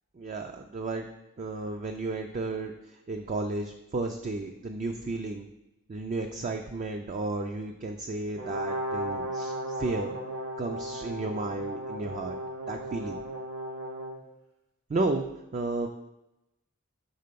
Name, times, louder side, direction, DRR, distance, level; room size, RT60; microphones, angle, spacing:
voice 1, 0.2-1.1 1.4-2.7 3.1-5.5 5.9-10.1 10.6-12.4 12.7-13.2 14.9-15.3 15.5-15.9, right 2 dB, 35° right, 5 dB, 0.3 m, -33 dB
Brass instrument, 8.4-14.2, right 1 dB, 60° right, 1.0 m, -35 dB
5.5 x 3.7 x 5.1 m, 0.93 s
head